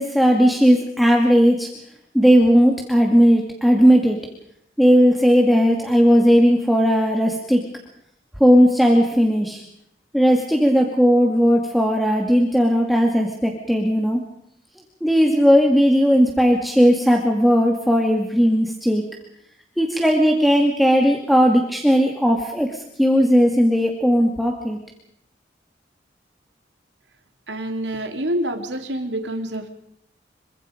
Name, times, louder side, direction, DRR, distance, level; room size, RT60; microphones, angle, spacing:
voice 1, 0.0-1.7 2.1-4.2 4.8-7.6 8.4-9.6 10.1-14.2 15.0-19.0 19.8-24.8, equal, ahead, 1 dB, 2.2 m, -17 dB
voice 2, 27.5-29.7, right 1 dB, 80° right, 5 dB, 2.8 m, -27 dB
27.0 x 24.0 x 5.2 m, 0.75 s
head